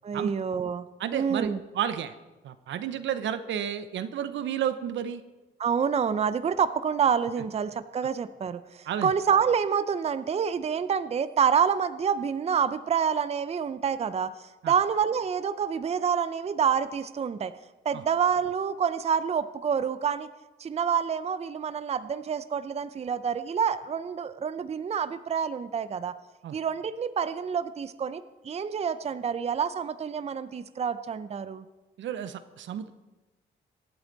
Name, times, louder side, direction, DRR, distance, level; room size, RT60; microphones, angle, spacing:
voice 1, 0.0-1.6 5.6-17.5 17.8-20.3 20.6-26.1 26.5-31.6, right 7 dB, 30° right, 13 dB, 0.6 m, -27 dB
voice 2, 1.0-2.1 2.4-5.2 8.9-9.1 14.6-14.7 17.9-18.0 26.4-26.6 32.0-32.9, right 9 dB, 70° right, 12 dB, 0.8 m, -31 dB
23.5 x 8.0 x 4.0 m, 1.1 s
cardioid pair, 90°, 20 cm